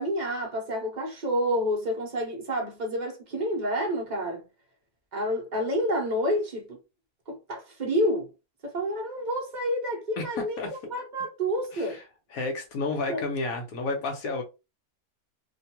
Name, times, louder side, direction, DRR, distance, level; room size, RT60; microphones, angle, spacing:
voice 1, 0.0-4.5 5.1-6.8 7.3-8.3 8.6-10.6 10.9-12.0 13.1-13.2, equal, 40° right, 0.6 m, -29 dB
voice 2, 10.2-10.7 11.7-12.0 12.3-14.4, left 3 dB, 65° left, 1.3 m, -31 dB
3.0 x 2.2 x 2.8 m
omnidirectional pair, 1.7 m